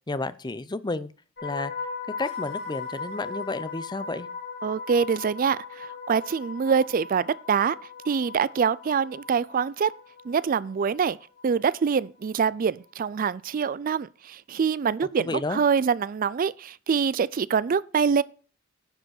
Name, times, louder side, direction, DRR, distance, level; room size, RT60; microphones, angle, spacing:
voice 1, 0.1-1.1 1.4-1.7 2.2-4.3 15.2-15.6, left 2 dB, 20° left, 0.6 m, -31 dB
sound 1, 1.4-11.4 11.7-12.0, left 5 dB, 60° left, 2.9 m, -38 dB
voice 2, 4.6-7.8 8.1-9.9 10.2-11.2 11.4-18.2, right 6 dB, 45° right, 0.4 m, -25 dB
10.5 x 5.1 x 6.4 m
head